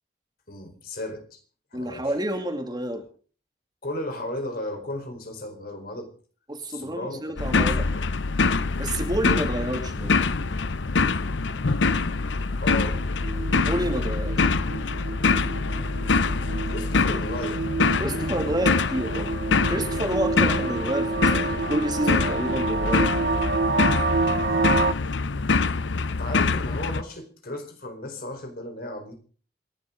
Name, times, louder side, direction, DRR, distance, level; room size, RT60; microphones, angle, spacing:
voice 1, 0.5-1.4 1.7-2.0 3.8-6.1 6.7-8.1 12.6-13.0 16.6-17.6 24.4-24.7 26.1-29.2, left 1 dB, 55° left, 5 dB, 4.6 m, -35 dB
voice 2, 1.7-3.0 6.5-7.9 8.8-10.1 13.6-14.5 18.0-19.3 19.7-23.1, right 1 dB, 25° right, 4 dB, 2.5 m, -29 dB
sound 1, 7.4-27.0, left 4 dB, 85° left, 0.8 m, -25 dB
sound 2, 12.9-24.9, right 3 dB, 60° right, 0.8 m, -29 dB
27.5 x 11.5 x 3.9 m, 0.42 s
head